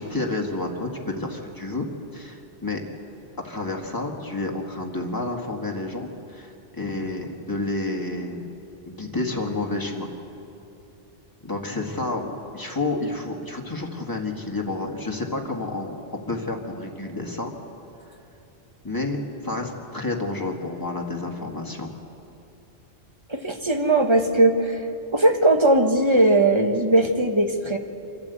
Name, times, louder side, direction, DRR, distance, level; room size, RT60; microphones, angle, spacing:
voice 1, 0.0-2.8 3.4-8.5 8.9-10.1 11.4-16.0 16.3-17.5 18.8-19.2 19.4-21.9, left 2 dB, 15° left, 1 dB, 1.9 m, -30 dB
voice 2, 23.3-24.8 25.1-27.8, right 2 dB, 25° right, 4 dB, 1.3 m, -19 dB
27.5 x 12.0 x 8.3 m, 2.8 s
omnidirectional pair, 1.3 m